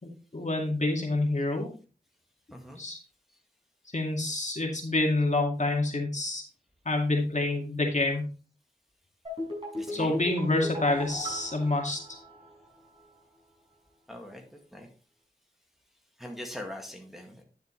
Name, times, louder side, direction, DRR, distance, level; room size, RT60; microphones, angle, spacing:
voice 1, 0.0-1.7 2.8-3.0 3.9-6.4 6.9-8.2 9.9-12.2, left 2 dB, 45° left, 1 dB, 2.2 m, -28 dB
sound 1, 9.2-12.7 13.0-13.1, left 1 dB, 30° right, 5.6 m, -37 dB
voice 2, 9.8-10.2 14.1-14.4 14.7-14.9 16.2-17.4, left 1 dB, ahead, 1 dB, 2.0 m, -41 dB
10.0 x 6.8 x 3.2 m, 0.34 s
wide cardioid pair, 50°, 16 cm